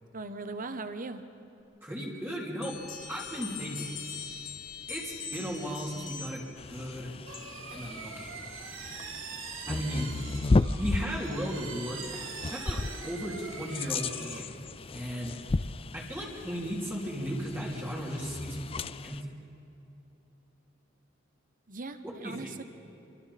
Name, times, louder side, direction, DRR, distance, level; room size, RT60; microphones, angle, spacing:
voice 1, 0.1-1.2 21.7-22.6, right 3 dB, 45° right, 9 dB, 1.1 m, -39 dB
voice 2, 1.8-2.8 3.1-4.0 4.9-6.4 6.7-7.1 7.7-8.4 9.7-10.1 10.8-14.5 14.9-15.4 15.9-19.4 22.0-22.5, equal, 10° right, -5 dB, 3.1 m, -36 dB
sound 1, 2.6-6.5, left 6 dB, 80° left, 4.2 m, -41 dB
sound 2, 6.6-19.2, left 3 dB, 30° left, 0.4 m, -34 dB
sound 3, 7.3-14.4, right 5 dB, 85° right, 2.1 m, -43 dB
29.0 x 24.0 x 4.3 m, 2.9 s
head